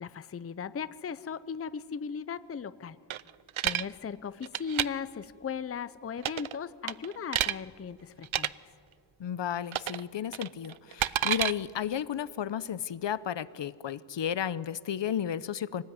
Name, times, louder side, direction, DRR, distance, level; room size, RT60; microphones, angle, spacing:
voice 1, 0.0-3.0 3.6-8.5, left 6 dB, 30° left, 15 dB, 0.5 m, -37 dB
sound 1, 3.1-3.8 4.4-4.9 6.2-6.6 6.9-7.6 8.2-8.5 9.7-10.0 10.3-11.5, right 11 dB, 85° right, 0.7 m, -29 dB
voice 2, 9.2-15.8, left 9 dB, 65° left, 17 dB, 0.7 m, -33 dB
25.0 x 19.0 x 9.5 m, 2.3 s
wide cardioid pair, 160°, 47 cm